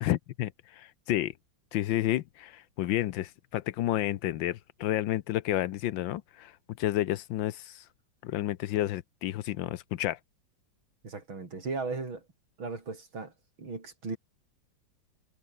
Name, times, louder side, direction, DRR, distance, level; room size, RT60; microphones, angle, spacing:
voice 1, 0.0-1.3 1.7-6.5 6.8-7.8 8.2-10.2, left 13 dB, 75° left, 1.4 m, -30 dB
voice 2, 11.0-12.2 12.6-13.3 13.6-14.2, right 4 dB, 85° right, 5.3 m, -36 dB
omnidirectional pair, 2.1 m